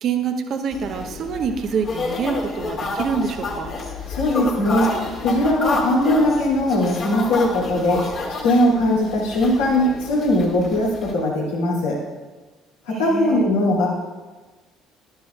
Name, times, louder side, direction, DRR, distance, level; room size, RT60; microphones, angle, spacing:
voice 1, 0.0-3.7 12.9-13.5, right 6 dB, 50° right, 6 dB, 0.8 m, -26 dB
sound 1, 0.7-11.1, left 3 dB, 50° left, 2.1 m, -29 dB
voice 2, 4.1-4.9 5.2-8.0 8.4-12.0 12.9-13.9, left 1 dB, 80° left, -5 dB, 2.5 m, -20 dB
12.0 x 11.0 x 2.3 m, 1.3 s
hypercardioid pair, 55°, 0 cm